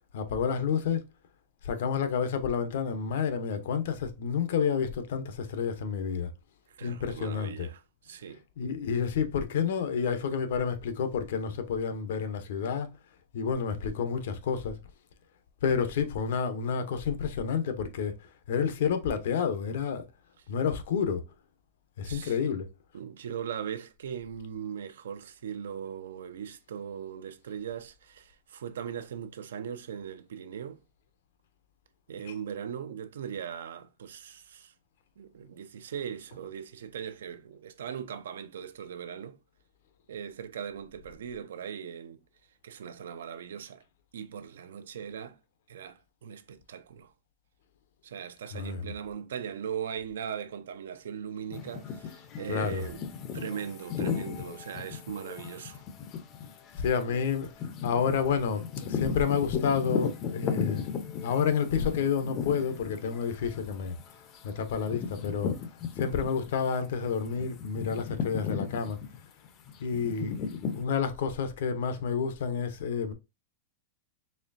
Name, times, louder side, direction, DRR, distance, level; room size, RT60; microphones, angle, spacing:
voice 1, 0.1-1.0 1.6-6.3 6.8-7.7 8.6-12.9 13.3-14.7 15.6-18.2 18.5-20.0 20.5-21.2 22.0-22.6 48.5-48.9 52.5-52.8 56.8-57.5 57.8-60.9 61.2-63.9 64.4-65.5 66.0-69.0 69.8-73.1, left 6 dB, 65° left, 0.7 m, -29 dB
voice 2, 6.8-8.4 22.0-22.6 22.9-30.8 32.1-34.7 35.2-39.4 40.1-42.2 42.6-43.8 44.1-45.4 45.7-47.1 48.0-53.0 53.3-55.8, right 8 dB, 90° right, 0.6 m, -39 dB
sound 1, 51.5-66.6 67.0-70.8, left 6 dB, 30° left, 0.5 m, -36 dB
4.2 x 3.2 x 2.5 m
supercardioid pair, 160°, 0 cm